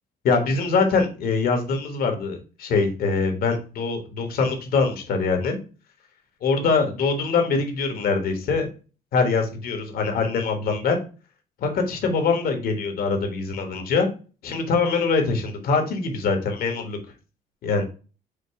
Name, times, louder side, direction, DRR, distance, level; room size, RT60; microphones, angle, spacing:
voice 1, 0.2-5.6 6.4-8.7 9.1-11.0 11.6-14.1 14.4-17.0 17.6-17.8, left 4 dB, 60° left, 5 dB, 1.3 m, -23 dB
5.1 x 2.2 x 4.5 m, 0.35 s
cardioid pair, 110°, 17 cm